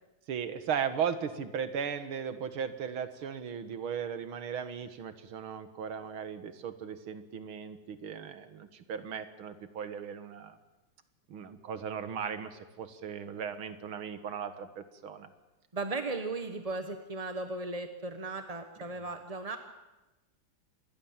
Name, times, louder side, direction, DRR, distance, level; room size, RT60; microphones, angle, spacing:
voice 1, 0.3-10.6 11.3-15.3, right 7 dB, 75° right, 11 dB, 2.3 m, -37 dB
voice 2, 15.7-19.6, right 3 dB, 25° right, 7 dB, 0.9 m, -36 dB
26.5 x 21.0 x 7.4 m, 1.0 s
omnidirectional pair, 2.3 m